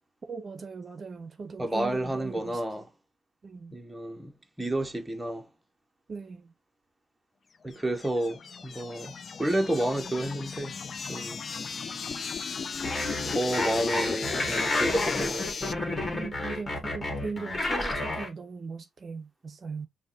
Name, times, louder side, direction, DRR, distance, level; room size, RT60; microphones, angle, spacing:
voice 1, 0.3-2.6 3.4-3.8 6.1-6.5 16.1-19.9, right 4 dB, 40° right, 0.7 m, -39 dB
voice 2, 1.6-2.9 3.7-5.5 7.6-10.8 11.1-11.4 13.3-15.8, right 1 dB, 10° right, 0.8 m, -30 dB
sound 1, 7.7-15.7, left 5 dB, 45° left, 0.3 m, -35 dB
sound 2, 12.8-18.3, left 2 dB, 25° left, 1.8 m, -31 dB
5.2 x 2.2 x 4.0 m
cardioid pair, 90°, 0 cm